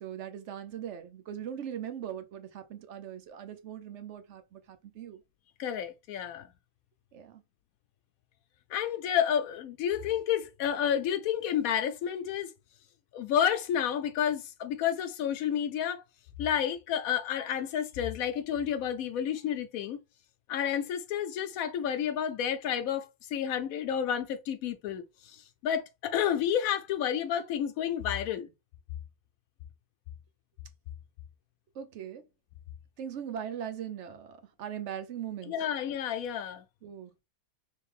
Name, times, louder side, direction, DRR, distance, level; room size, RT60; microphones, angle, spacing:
voice 1, 0.0-5.2 7.1-7.4 31.7-32.2 33.0-35.5 36.8-37.1, right 9 dB, 60° right, 0.8 m, -40 dB
voice 2, 5.6-6.5 8.7-12.5 13.1-16.0 16.4-20.0 20.5-28.5 35.5-36.6, left 9 dB, 75° left, 1.0 m, -30 dB
3.3 x 3.2 x 3.3 m
omnidirectional pair, 1.5 m